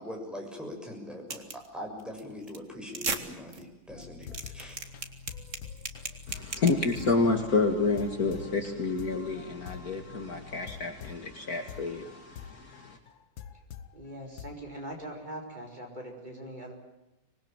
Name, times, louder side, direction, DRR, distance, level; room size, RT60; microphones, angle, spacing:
voice 1, 0.0-4.8, left 1 dB, ahead, 1 dB, 6.8 m, -42 dB
sound 1, 1.3-1.7 2.0-2.2 2.5-2.6 2.9-3.2 3.5-3.6 4.0-7.1, right 4 dB, 40° right, 2.3 m, -35 dB
sound 2, 3.9-13.9 14.4-14.8, left 7 dB, 80° left, 1.9 m, -46 dB
voice 2, 6.3-13.0, left 3 dB, 50° left, 5 dB, 2.5 m, -29 dB
voice 3, 13.9-16.7, right 1 dB, 20° right, 1 dB, 5.1 m, -41 dB
26.0 x 20.5 x 9.0 m, 0.97 s
omnidirectional pair, 2.1 m